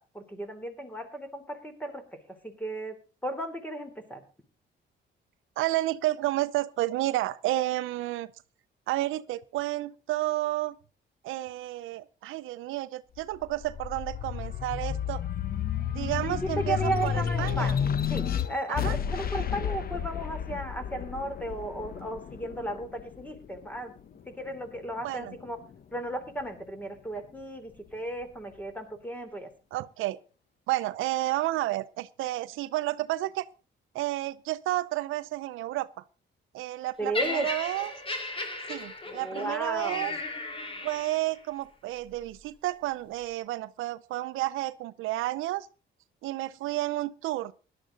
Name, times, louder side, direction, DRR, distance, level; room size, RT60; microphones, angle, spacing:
voice 1, 0.1-2.0 2.3-3.0 3.2-4.2 16.2-23.9 24.3-25.6 25.9-29.5 37.0-37.5 39.1-40.2, right 1 dB, 10° left, 3.4 m, -35 dB
voice 2, 5.6-8.3 8.9-10.8 11.2-15.2 15.9-17.8 18.7-19.0 25.0-25.3 29.7-30.2 30.7-33.5 33.9-36.0 36.5-38.0 38.7-40.1 40.8-45.7 46.2-47.5, right 16 dB, 90° right, 0.7 m, -31 dB
sound 1, 13.2-24.0 24.5-25.6, left 8 dB, 50° left, 1.0 m, -32 dB
Laughter, 37.1-41.4 42.2-42.4, left 2 dB, 25° left, 2.7 m, -36 dB
16.5 x 11.5 x 3.9 m
cardioid pair, 90°, 20 cm